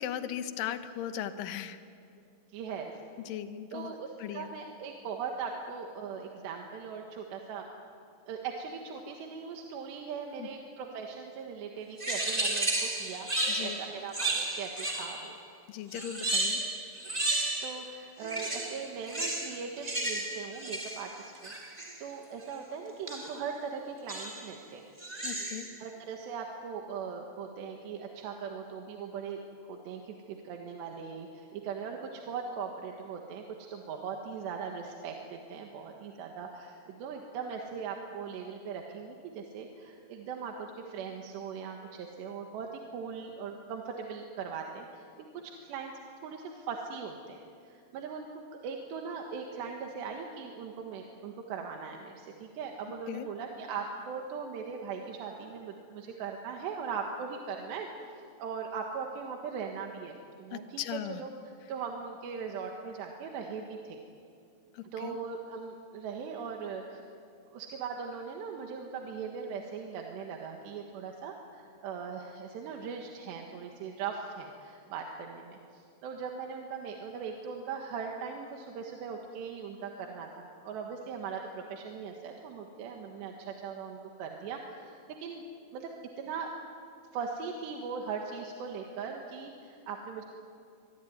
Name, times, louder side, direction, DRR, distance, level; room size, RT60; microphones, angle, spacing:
voice 1, 0.0-1.8 3.3-4.5 10.4-10.5 13.5-13.8 15.7-16.6 25.2-25.7 53.1-53.3 60.5-61.2 64.7-65.2, left 10 dB, 65° left, 9 dB, 2.5 m, -38 dB
voice 2, 2.5-2.9 3.7-7.7 8.3-13.3 13.6-15.4 17.6-24.9 25.8-33.4 33.7-45.9 46.2-48.3 48.6-57.9 58.4-61.3 61.7-64.0 64.9-67.0 67.5-85.4 85.7-85.9 86.2-86.5 87.1-90.2, right 6 dB, 80° right, 2 dB, 3.8 m, -40 dB
sound 1, 12.0-15.4 15.9-17.9 18.2-22.0 23.1-23.4 24.1-24.5 25.0-25.8, right 2 dB, 15° right, 1.7 m, -33 dB
24.5 x 24.0 x 9.5 m, 2.4 s
omnidirectional pair, 4.9 m